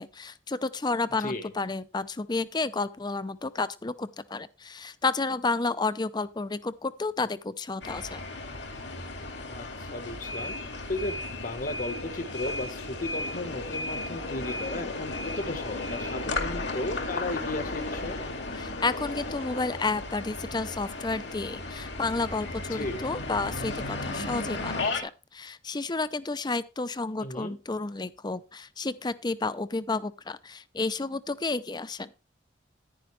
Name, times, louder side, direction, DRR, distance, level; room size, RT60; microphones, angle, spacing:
voice 1, 0.0-8.2 18.6-32.1, left 3 dB, 25° left, 0.5 m, -31 dB
voice 2, 1.2-1.5 9.5-10.6 10.9-18.2 22.7-23.0 27.2-27.6, left 2 dB, 45° left, 1.3 m, -35 dB
sound 1, 7.8-25.0, left 2 dB, 65° left, 2.3 m, -35 dB
10.5 x 10.0 x 3.2 m
head